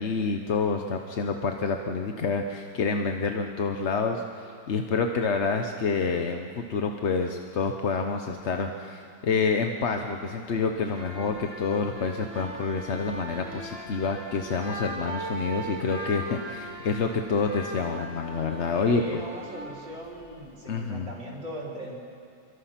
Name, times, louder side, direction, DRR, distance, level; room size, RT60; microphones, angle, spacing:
voice 1, 0.0-19.2 20.7-21.1, left 4 dB, 50° left, 5 dB, 0.9 m, -28 dB
sound 1, 10.8-20.6, right 1 dB, 45° right, 6.1 m, -39 dB
voice 2, 18.7-22.0, equal, 65° right, -3 dB, 4.7 m, -39 dB
28.0 x 23.5 x 5.9 m, 2.4 s
omnidirectional pair, 2.0 m